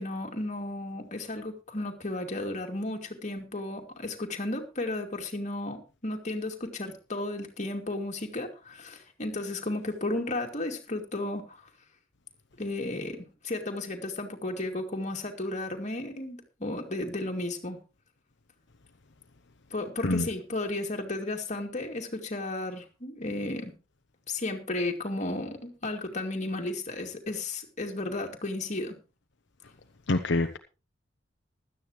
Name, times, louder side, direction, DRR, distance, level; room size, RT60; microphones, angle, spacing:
voice 1, 0.0-11.6 12.6-17.8 19.7-23.7 24.3-29.0, left 2 dB, 40° left, 2.5 m, -34 dB
voice 2, 30.1-30.6, left 2 dB, 65° left, 0.9 m, -25 dB
16.5 x 12.5 x 3.1 m
head